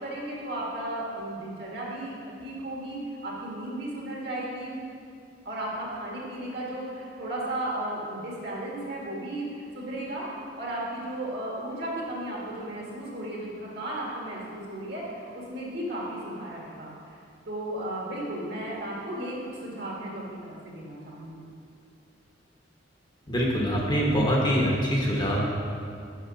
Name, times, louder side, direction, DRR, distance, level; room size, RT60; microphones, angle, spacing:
voice 1, 0.0-4.8 5.5-16.9 17.5-21.5, right 1 dB, 60° right, -4 dB, 1.7 m, -35 dB
voice 2, 23.3-25.4, equal, 25° left, -3 dB, 1.0 m, -24 dB
6.5 x 5.8 x 5.1 m, 2.3 s
head